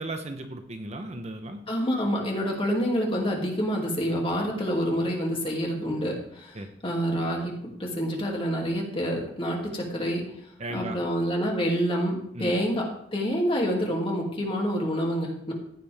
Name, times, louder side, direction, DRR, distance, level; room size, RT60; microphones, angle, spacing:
voice 1, 0.0-1.6 6.5-6.7 10.6-11.0 12.3-12.5, right 2 dB, 35° right, 6 dB, 1.0 m, -35 dB
voice 2, 1.7-6.5 6.8-7.5 7.8-10.2 10.7-15.5, equal, 30° left, -1 dB, 2.7 m, -27 dB
15.0 x 9.2 x 3.6 m, 0.73 s
head